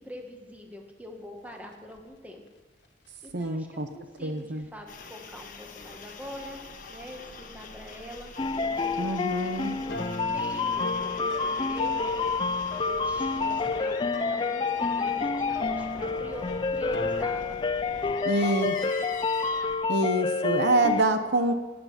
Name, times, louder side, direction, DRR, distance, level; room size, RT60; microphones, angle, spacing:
voice 1, 0.0-2.4 3.2-6.6 6.9-8.3 8.7-12.2 12.9-19.0, left 1 dB, 10° right, 2 dB, 1.7 m, -44 dB
sound 1, 1.9-2.0 3.2-3.3 4.6-4.7 5.9-6.0 7.2-7.3 8.6-8.7 9.9-17.2, left 3 dB, 65° left, 1.7 m, -39 dB
voice 2, 3.3-3.9 4.2-4.7 9.0-9.8 18.2-18.7 19.9-21.5, right 2 dB, 60° right, 8 dB, 0.8 m, -26 dB
sound 2, 4.9-19.8, left 4 dB, 45° left, 1.4 m, -44 dB
sound 3, 8.4-21.0, left 4 dB, 25° left, 0.4 m, -29 dB
18.5 x 9.5 x 5.7 m, 1.3 s
head